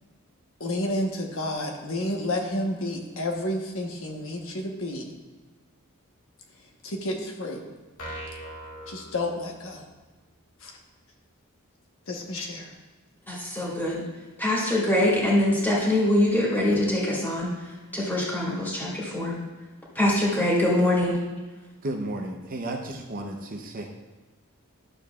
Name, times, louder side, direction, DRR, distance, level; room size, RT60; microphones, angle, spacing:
voice 1, 0.6-5.1 6.8-7.6 8.9-9.8 10.6-10.7 12.1-12.7, left 1 dB, 65° left, 1 dB, 1.1 m, -30 dB
sound 1, 8.0-9.9, equal, 80° left, 1.6 m, -40 dB
voice 2, 13.3-14.0 14.4-19.4 20.0-21.2, left 1 dB, 10° left, -6 dB, 2.1 m, -24 dB
voice 3, 21.8-23.9, right 1 dB, 40° right, 2 dB, 0.7 m, -33 dB
11.5 x 7.0 x 2.4 m, 1.3 s
head